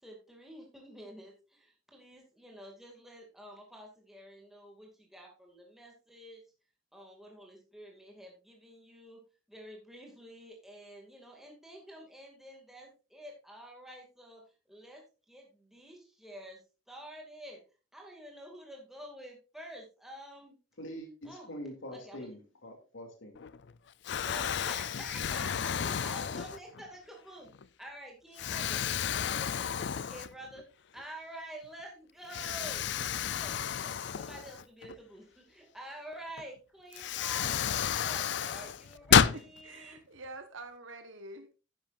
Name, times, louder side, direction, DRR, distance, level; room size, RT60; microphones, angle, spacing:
voice 1, 0.0-6.4 6.9-9.2 9.5-14.4 14.7-16.6 16.9-17.6 17.9-20.6 21.2-21.5 21.9-22.3 24.2-27.5 27.8-28.9 29.2-30.6 30.9-32.8 33.3-40.0, right 1 dB, ahead, -1 dB, 2.3 m, -49 dB
voice 2, 20.8-23.4, equal, 85° left, 3 dB, 2.7 m, -44 dB
Explosion, 23.3-23.7 24.0-26.9 27.5-27.6 28.4-30.6 31.0-31.1 32.3-34.9 36.4-36.5 36.9-39.4, left 8 dB, 65° left, 0.5 m, -31 dB
voice 3, 39.2-41.6, right 2 dB, 80° right, 7 dB, 1.2 m, -47 dB
11.0 x 10.5 x 2.5 m, 0.32 s
head